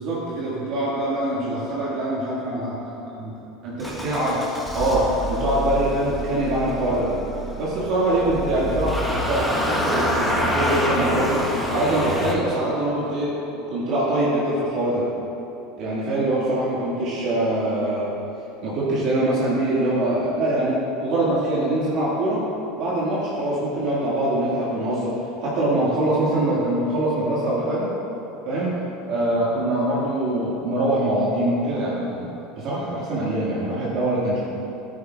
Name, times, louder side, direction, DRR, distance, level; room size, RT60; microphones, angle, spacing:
voice 1, 0.0-2.8 3.6-4.4 4.7-7.1 7.6-13.3 13.7-15.0 15.8-18.0 18.6-22.4 22.8-25.1 25.4-27.9 28.5-28.7 29.1-32.2 32.6-34.4, right 1 dB, 55° right, -7 dB, 1.8 m, -23 dB
Motor vehicle (road) / Engine starting, 3.8-12.3, equal, ahead, 1.1 m, -27 dB
9.4 x 9.3 x 2.3 m, 3.0 s
supercardioid pair, 115°, 0 cm